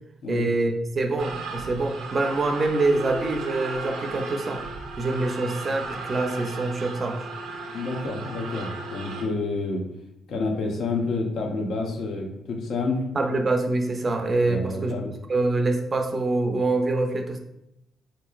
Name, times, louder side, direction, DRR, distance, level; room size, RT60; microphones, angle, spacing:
voice 1, 0.3-4.6 5.0-7.3 13.1-14.9 15.3-17.4, right 2 dB, 35° right, 5 dB, 0.5 m, -25 dB
sound 1, 1.2-9.2, right 3 dB, 80° right, 0.6 m, -36 dB
voice 2, 7.7-9.8 10.3-13.0 14.4-15.1, left 3 dB, 70° left, 1 dB, 0.7 m, -29 dB
3.7 x 3.0 x 2.3 m, 0.84 s
cardioid pair, 90°, 0 cm